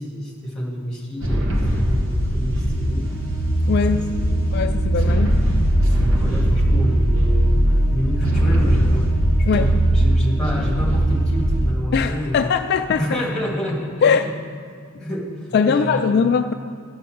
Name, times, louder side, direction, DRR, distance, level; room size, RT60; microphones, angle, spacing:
voice 1, 0.0-3.1 3.9-4.4 5.0-5.4 5.7-7.6 7.9-9.1 9.4-12.5 13.0-14.3 15.0-16.2, equal, 5° left, -3 dB, 2.0 m, -28 dB
sound 1, 1.2-11.7, right 1 dB, 60° right, 1.3 m, -19 dB
voice 2, 3.7-4.1 4.5-5.3 9.5-9.7 11.9-13.0 14.0-14.3 15.5-16.5, left 6 dB, 50° left, 7 dB, 0.3 m, -20 dB
11.0 x 5.7 x 7.7 m, 2.3 s
head